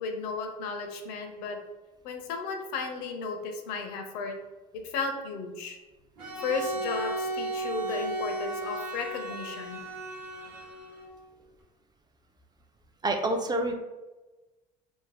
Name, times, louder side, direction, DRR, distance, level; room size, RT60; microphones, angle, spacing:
voice 1, 0.0-1.6 2.0-4.4 4.7-5.8 6.4-9.8, left 4 dB, 80° left, 5 dB, 0.5 m, -34 dB
Bowed string instrument, 6.2-11.2, right 1 dB, 85° right, 0.9 m, -35 dB
voice 2, 13.0-13.7, right 1 dB, 20° right, 5 dB, 0.3 m, -27 dB
2.6 x 2.1 x 3.2 m, 1.1 s
hypercardioid pair, 75°, 20 cm